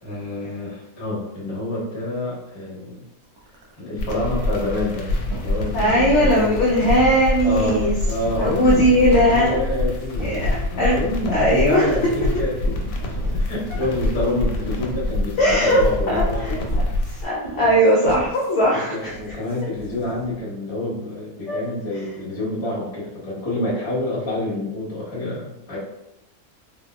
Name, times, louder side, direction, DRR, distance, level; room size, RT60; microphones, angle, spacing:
voice 1, 0.0-3.0 3.8-6.6 7.4-12.9 13.3-16.8 18.9-25.8, left 1 dB, 25° left, -5 dB, 0.6 m, -28 dB
sound 1, 3.2-3.8 4.1-4.9 5.2-20.4, right 1 dB, 75° right, 1.3 m, -37 dB
sound 2, 4.0-17.2, left 1 dB, 85° left, 1.1 m, -26 dB
voice 2, 5.7-7.9 8.4-9.5 10.2-11.0 11.3-11.9 15.4-16.6 17.2-19.1 21.5-21.7, equal, 65° left, -4 dB, 0.7 m, -19 dB
3.5 x 2.2 x 2.2 m, 0.88 s
omnidirectional pair, 1.6 m